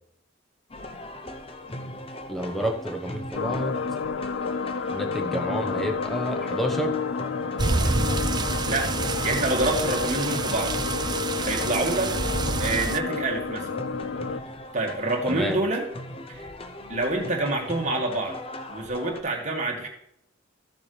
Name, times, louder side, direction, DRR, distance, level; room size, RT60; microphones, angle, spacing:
sound 1, 0.7-19.2, left 1 dB, 30° left, 0.7 m, -39 dB
voice 1, 2.3-3.8 4.9-6.9 15.3-15.5, right 1 dB, ahead, 4 dB, 1.0 m, -29 dB
sound 2, 3.3-14.4, left 5 dB, 60° left, 0.3 m, -30 dB
sound 3, 7.6-13.0, right 3 dB, 20° right, 0.4 m, -28 dB
voice 2, 8.6-9.0 9.2-10.8 11.4-12.2 12.6-13.7 14.7-15.9 16.4-16.5 16.9-18.4 18.7-19.9, right 2 dB, 35° right, 1 dB, 1.8 m, -27 dB
14.0 x 7.0 x 3.3 m, 0.74 s
head